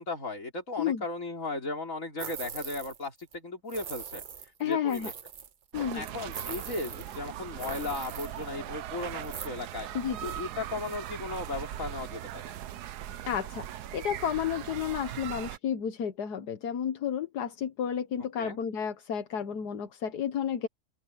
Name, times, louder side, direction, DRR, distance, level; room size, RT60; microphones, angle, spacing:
voice 1, 0.0-4.2 4.6-5.1 5.9-9.9 10.2-12.5 18.4-18.6, left 3 dB, 50° left, 4.2 m, -36 dB
sound 1, 2.2-3.1 3.3-3.4 3.7-5.5 6.3-7.2 7.6-8.4 9.2-9.5, right 7 dB, 45° right, 0.7 m, -41 dB
voice 2, 4.6-5.1 5.7-6.0 9.9-10.3 13.3-13.7 13.9-20.7, left 8 dB, 80° left, 1.7 m, -31 dB
sound 2, 5.7-15.6, right 12 dB, 80° right, 1.3 m, -40 dB
omnidirectional pair, 1.7 m